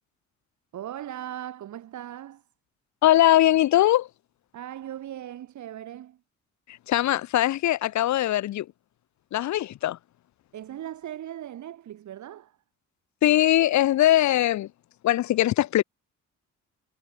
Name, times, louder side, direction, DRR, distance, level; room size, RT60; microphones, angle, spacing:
voice 1, 0.7-2.4 4.5-6.2 10.5-12.6, right 11 dB, 70° right, 3.9 m, -38 dB
voice 2, 3.0-4.1 6.9-8.7 9.3-10.0 13.2-14.7 15.0-15.8, left 13 dB, 70° left, 0.8 m, -21 dB
cardioid pair, 90°, 30 cm